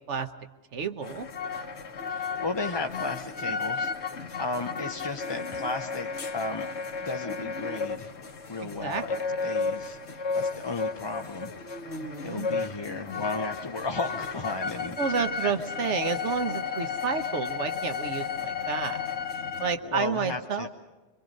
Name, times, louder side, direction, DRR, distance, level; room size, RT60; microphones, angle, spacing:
voice 1, 0.7-1.3 8.6-9.0 11.8-12.5 15.0-19.1 19.6-20.7, right 6 dB, 90° right, 8 dB, 1.3 m, -30 dB
sound 1, 1.0-19.8, left 5 dB, 70° left, 1.4 m, -33 dB
voice 2, 2.1-6.7 7.0-8.1 8.5-9.2 9.4-11.5 12.2-15.0 15.4-15.5 19.8-20.7, left 3 dB, 25° left, 5 dB, 0.7 m, -34 dB
26.5 x 24.0 x 5.3 m, 1.3 s
omnidirectional pair, 1.2 m